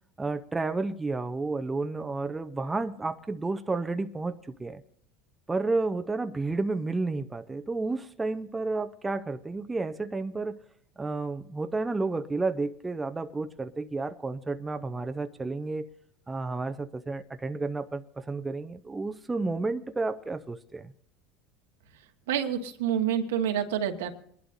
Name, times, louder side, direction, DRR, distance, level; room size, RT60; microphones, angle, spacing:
voice 1, 0.2-4.8 5.5-10.6 11.0-15.9 16.3-20.9, right 3 dB, 15° right, 0.6 m, -31 dB
voice 2, 22.3-24.1, right 9 dB, 90° right, 1.3 m, -27 dB
24.0 x 11.5 x 2.6 m
supercardioid pair, 100°, 0 cm